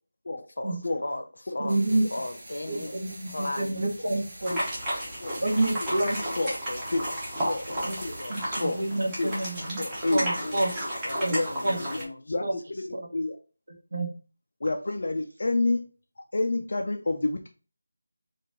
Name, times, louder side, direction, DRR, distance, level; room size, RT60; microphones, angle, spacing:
voice 1, 0.6-1.8 2.1-2.9 3.3-3.8 5.1-5.2 6.7-7.0 7.7-7.9 8.2-8.4 8.9-9.1 10.5-10.7 11.0-12.5, left 1 dB, 65° left, 0.8 m, -37 dB
voice 2, 1.6-2.1 2.7-4.6 5.4-6.2 7.8-7.9 8.3-9.8 10.1-10.7 11.2-11.4 11.6-11.8 12.4-12.5 12.9-13.0 13.9-14.1, right 2 dB, 55° right, 1.4 m, -28 dB
sound 1, 1.7-8.2, right 1 dB, 25° right, 1.6 m, -45 dB
sound 2, 4.4-12.0, equal, 10° right, 0.8 m, -33 dB
voice 3, 9.8-10.6 11.3-13.4 14.6-15.9 16.3-17.5, left 2 dB, 40° left, 0.4 m, -29 dB
4.6 x 2.5 x 3.7 m
figure-of-eight pair, 180°, 0 cm